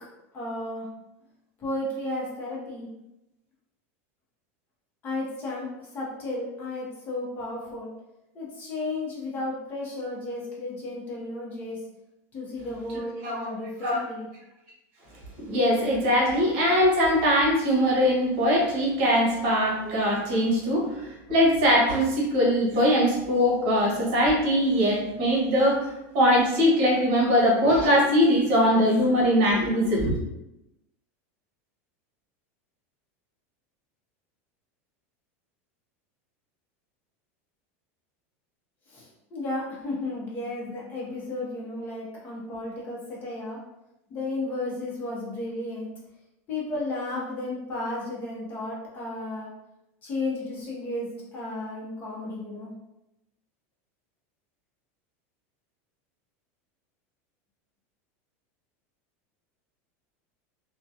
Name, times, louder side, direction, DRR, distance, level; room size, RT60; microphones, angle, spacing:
voice 1, 0.3-0.9 1.6-2.9 5.0-7.9 8.3-11.8 12.3-14.3 38.9-43.6 44.1-45.9 46.5-49.5 50.0-52.7, left 2 dB, 25° left, -4 dB, 0.8 m, -33 dB
voice 2, 15.4-30.2, equal, 55° right, -3 dB, 1.2 m, -22 dB
3.5 x 2.2 x 2.7 m, 0.89 s
supercardioid pair, 165°, 8 cm